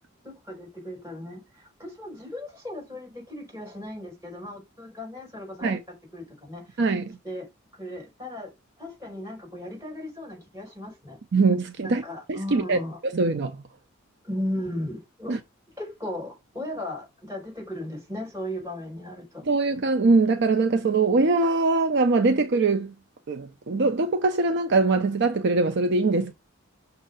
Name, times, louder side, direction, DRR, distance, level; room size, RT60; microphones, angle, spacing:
voice 1, 0.2-6.8 7.2-7.5 7.8-8.5 8.8-11.2 11.8-13.0 14.2-15.4 15.8-19.5, left 1 dB, 15° right, 4.1 m, -36 dB
voice 2, 6.8-7.2 11.3-12.0 12.3-12.8 13.1-13.7 15.3-15.4 19.5-22.9 23.3-26.3, right 3 dB, 55° right, 0.6 m, -22 dB
6.4 x 2.7 x 5.5 m
head